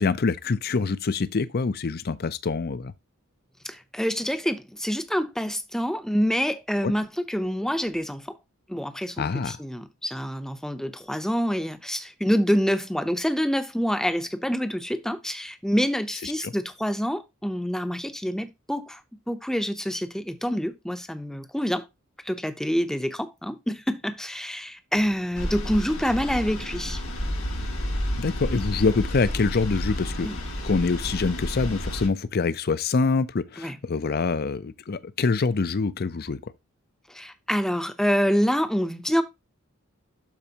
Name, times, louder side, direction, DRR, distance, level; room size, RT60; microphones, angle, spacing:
voice 1, 0.0-2.9 6.8-6.9 9.2-9.6 16.4-16.5 28.2-30.3 30.6-36.4, left 4 dB, 50° left, 0.5 m, -25 dB
voice 2, 3.6-8.3 8.7-19.0 19.3-21.8 22.2-27.0 30.2-30.4 33.6-33.8 37.1-39.2, equal, ahead, 0.7 m, -27 dB
sound 1, 25.3-32.1, equal, 90° left, 4.4 m, -30 dB
12.0 x 4.4 x 2.9 m
head